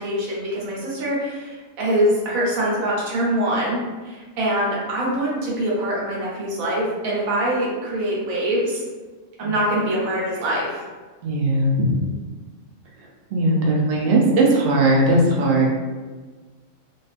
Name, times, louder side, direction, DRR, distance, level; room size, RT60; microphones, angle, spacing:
voice 1, 0.0-8.8 9.4-10.8, right 1 dB, 85° right, -5 dB, 1.2 m, -24 dB
voice 2, 11.2-12.1 13.0-15.7, right 1 dB, 65° right, -2 dB, 0.6 m, -19 dB
2.4 x 2.3 x 2.4 m, 1.4 s
omnidirectional pair, 1.4 m